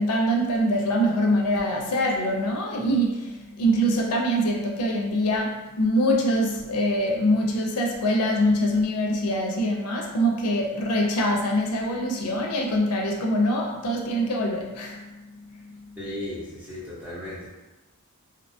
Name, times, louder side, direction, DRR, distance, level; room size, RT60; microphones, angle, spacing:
voice 1, 0.0-15.9, equal, 85° left, 1 dB, 0.5 m, -24 dB
voice 2, 16.0-17.5, left 1 dB, 5° right, -9 dB, 0.8 m, -35 dB
2.6 x 2.2 x 2.6 m, 1.1 s
head